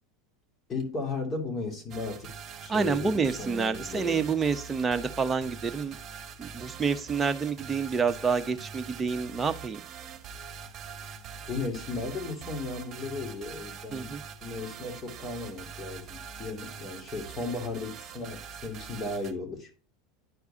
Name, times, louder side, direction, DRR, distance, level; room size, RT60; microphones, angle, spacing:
voice 1, 0.7-2.3 2.6-4.2 11.5-14.1 14.4-19.7, left 3 dB, 30° left, 2.6 m, -35 dB
sound 1, 1.9-19.3, right 6 dB, 40° right, 1.3 m, -43 dB
voice 2, 2.7-6.0 6.4-9.8 13.9-14.2, right 5 dB, 20° right, 0.9 m, -28 dB
10.5 x 4.6 x 2.8 m
hypercardioid pair, 95°, 0 cm